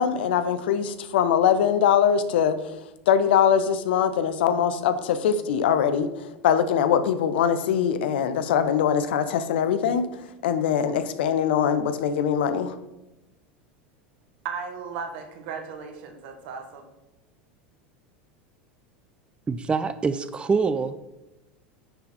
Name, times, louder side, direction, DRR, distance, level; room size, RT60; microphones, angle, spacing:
voice 1, 0.0-2.6 3.1-6.1 6.4-10.1 10.4-12.7, left 8 dB, 75° left, 12 dB, 0.6 m, -22 dB
voice 2, 14.4-16.9, right 6 dB, 70° right, 5 dB, 1.3 m, -36 dB
voice 3, 19.5-21.0, right 5 dB, 20° right, 12 dB, 0.4 m, -25 dB
9.5 x 4.1 x 4.2 m, 0.98 s
hypercardioid pair, 90°, 6 cm